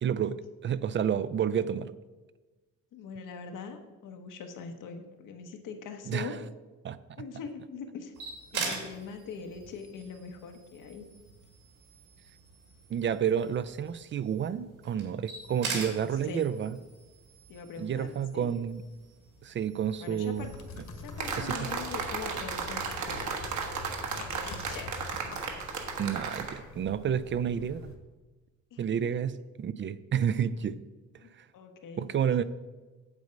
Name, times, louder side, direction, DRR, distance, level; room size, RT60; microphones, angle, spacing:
voice 1, 0.0-1.9 6.1-6.3 6.8-7.0 12.9-16.8 17.8-18.8 19.4-20.5 21.4-21.7 26.0-27.9 28.8-30.8 31.4-31.5 32.0-32.4, right 8 dB, 40° right, 15 dB, 0.4 m, -30 dB
voice 2, 2.9-6.4 7.2-8.1 8.5-11.1 15.8-16.5 17.5-18.5 20.0-20.5 20.9-23.4 24.1-24.9 28.7-29.1 31.2-32.1, left 5 dB, 85° left, 5 dB, 1.3 m, -42 dB
sound 1, 8.1-21.3, right 4 dB, 85° right, 2.8 m, -43 dB
sound 2, 20.3-27.9, left 3 dB, 65° left, 1.5 m, -45 dB
sound 3, 21.2-26.6, right 5 dB, 65° right, 1.4 m, -35 dB
8.1 x 7.8 x 5.2 m, 1.2 s
cardioid pair, 125°, 31 cm